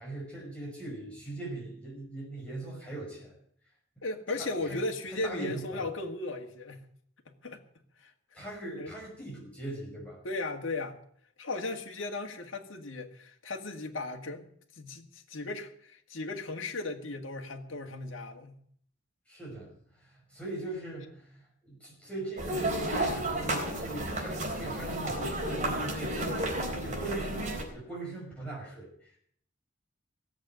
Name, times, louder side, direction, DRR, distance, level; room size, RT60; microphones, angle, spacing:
voice 1, 0.0-3.4 4.0-4.1 4.3-4.8 5.1-5.9 8.3-10.2 19.3-29.2, right 2 dB, 5° left, -5 dB, 5.8 m, -41 dB
voice 2, 4.0-6.8 7.3-7.6 8.0-8.4 8.8-8.9 10.2-11.0 11.4-14.5 14.8-18.6, left 2 dB, 70° left, 3 dB, 2.0 m, -36 dB
sound 1, 22.4-27.6, right 1 dB, 40° right, 3.8 m, -32 dB
17.0 x 7.9 x 9.1 m, 0.64 s
head